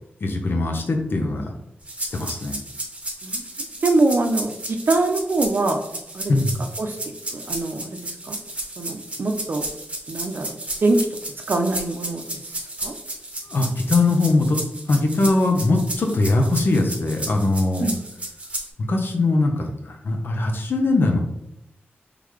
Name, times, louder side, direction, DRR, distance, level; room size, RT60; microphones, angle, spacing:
voice 1, 0.2-1.6 2.0-2.6 6.3-6.6 13.4-14.6 14.9-17.9 18.8-21.4, left 2 dB, 65° left, 3 dB, 0.7 m, -21 dB
sound 1, 1.9-18.7, right 1 dB, 30° right, 0.9 m, -33 dB
voice 2, 3.8-5.8 6.1-6.3 6.8-7.0 7.3-8.0 8.3-8.4 8.8-9.7 10.1-10.5 10.8-11.0 11.5-12.9 17.8-18.0, right 2 dB, 60° right, 5 dB, 0.6 m, -23 dB
3.9 x 3.3 x 3.1 m, 0.84 s
wide cardioid pair, 115°, 4 cm